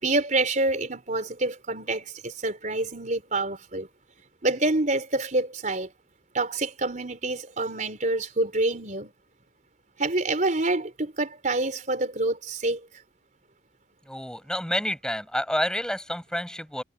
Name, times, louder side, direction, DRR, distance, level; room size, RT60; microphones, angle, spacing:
voice 1, 0.0-3.9 4.4-5.9 6.3-9.1 10.0-12.9, right 2 dB, 45° right, 4.4 m, -27 dB
voice 2, 14.1-16.8, left 1 dB, 5° left, 6.4 m, -29 dB
head